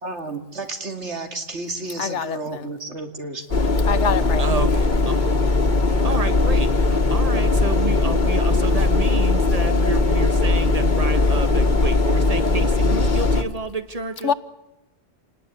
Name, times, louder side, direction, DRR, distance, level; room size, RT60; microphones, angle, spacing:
voice 1, 0.0-3.7, right 2 dB, 90° right, 2.8 m, -32 dB
voice 2, 2.0-2.7 3.8-4.4 14.2-14.3, left 7 dB, 90° left, 1.4 m, -25 dB
sound 1, 3.5-13.4, left 3 dB, 45° left, 1.5 m, -19 dB
voice 3, 4.4-5.4 6.0-14.3, right 3 dB, 35° right, 1.6 m, -30 dB
28.0 x 19.0 x 9.9 m
omnidirectional pair, 1.2 m